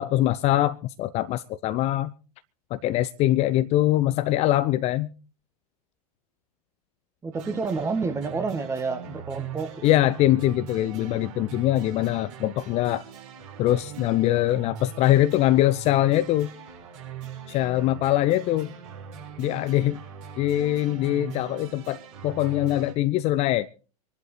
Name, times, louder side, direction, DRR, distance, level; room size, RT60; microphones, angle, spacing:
voice 1, 0.0-2.1 2.7-5.1 9.8-13.0 13.6-16.5 17.5-18.7 19.4-20.0 20.4-23.7, left 14 dB, 35° left, 0.6 m, -23 dB
voice 2, 7.2-9.9, right 4 dB, 15° right, 1.6 m, -29 dB
sound 1, 7.3-22.9, right 6 dB, 55° right, 6.3 m, -41 dB
26.0 x 11.5 x 3.2 m
figure-of-eight pair, 95°, 20 cm